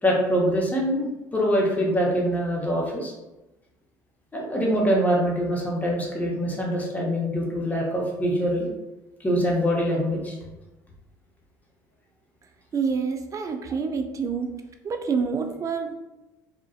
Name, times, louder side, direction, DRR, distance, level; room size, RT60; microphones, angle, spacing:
voice 1, 0.0-3.1 4.3-8.7 9.2-10.4, equal, 15° left, -2 dB, 0.8 m, -24 dB
voice 2, 12.7-14.5 14.8-15.9, right 5 dB, 35° right, 5 dB, 0.4 m, -27 dB
2.5 x 2.1 x 2.3 m, 1.0 s
hypercardioid pair, 65°, 10 cm